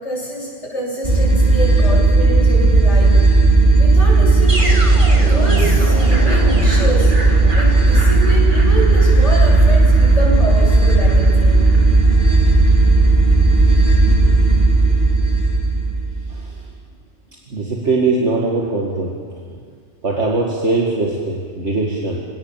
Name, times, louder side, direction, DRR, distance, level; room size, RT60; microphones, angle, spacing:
voice 1, 0.0-3.1 3.8-4.8 5.2-7.1 7.5-11.6, right 1 dB, 70° left, -10 dB, 7.7 m, -26 dB
sound 1, 1.0-16.4, right 2 dB, 40° right, 2.8 m, -13 dB
voice 2, 17.5-19.2 20.0-22.2, right 3 dB, 65° right, -1 dB, 2.4 m, -20 dB
28.5 x 17.5 x 7.4 m, 2.1 s
omnidirectional pair, 1.3 m